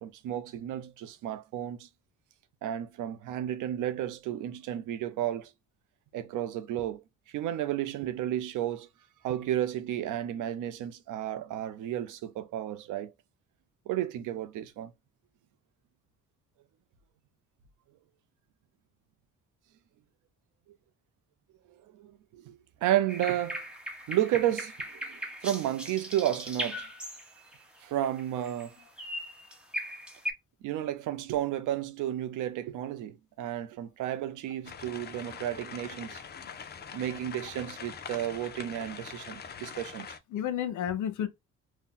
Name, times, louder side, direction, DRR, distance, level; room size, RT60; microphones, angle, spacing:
voice 1, 0.0-1.9 2.6-5.5 6.1-8.9 9.2-13.1 13.9-14.9 21.7-23.6 24.1-26.9 27.8-28.8 30.6-36.2 36.9-40.2, right 12 dB, 85° right, 0.6 m, -32 dB
sound 1, 23.1-27.6 28.0-28.7 29.0-30.3, equal, 5° right, 0.9 m, -38 dB
sound 2, 34.6-40.2, left 6 dB, 35° left, 0.5 m, -43 dB
voice 2, 40.3-41.3, left 10 dB, 75° left, 0.7 m, -32 dB
2.7 x 2.1 x 3.7 m
cardioid pair, 90°, 30 cm